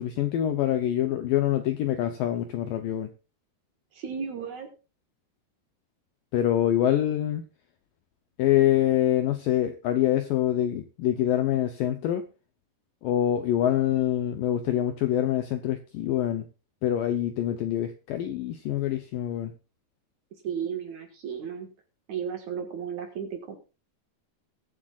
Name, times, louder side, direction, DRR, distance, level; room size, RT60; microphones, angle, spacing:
voice 1, 0.0-3.1 6.3-7.4 8.4-12.2 13.0-16.5 16.8-19.5, left 12 dB, 75° left, 2.0 m, -25 dB
voice 2, 3.9-4.7 20.4-21.7 22.1-23.6, right 7 dB, 55° right, 2.5 m, -34 dB
22.0 x 7.8 x 2.4 m
omnidirectional pair, 4.9 m